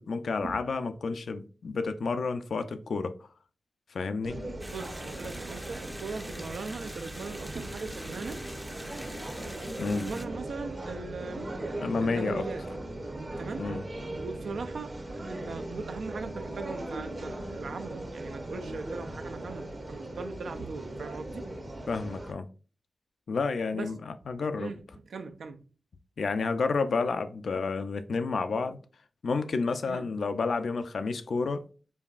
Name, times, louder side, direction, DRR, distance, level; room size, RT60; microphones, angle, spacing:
voice 1, 0.0-3.2 3.9-4.4 9.8-10.1 11.8-12.5 13.6-13.8 21.9-22.5 23.3-24.7 26.2-28.8 29.2-31.6, left 4 dB, 75° left, 0.4 m, -30 dB
sound 1, 4.2-22.3, right 1 dB, 45° right, 0.8 m, -39 dB
sound 2, 4.6-10.3, right 1 dB, 10° right, 0.5 m, -44 dB
voice 2, 4.7-8.4 9.9-11.5 12.0-12.6 13.4-13.7 14.2-21.5 23.7-23.9 24.6-24.8 25.0-25.6 29.9-30.1, right 4 dB, 80° right, 0.4 m, -40 dB
5.4 x 2.3 x 2.4 m
cardioid pair, 50°, 0 cm